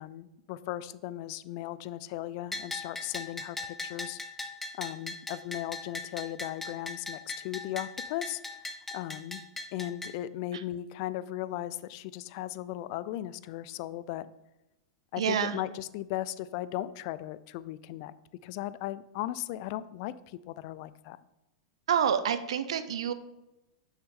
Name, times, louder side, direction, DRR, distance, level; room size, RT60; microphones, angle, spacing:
voice 1, 0.0-4.2 4.7-8.6 8.9-9.4 9.7-14.3 15.1-18.1 18.4-21.2, left 14 dB, 50° left, 17 dB, 0.4 m, -37 dB
Bell, 2.5-10.1, left 2 dB, 10° left, 0.7 m, -39 dB
voice 2, 15.2-15.6 21.9-23.1, right 8 dB, 80° right, 11 dB, 0.6 m, -27 dB
6.4 x 6.0 x 3.8 m, 0.94 s
hypercardioid pair, 120°, 3 cm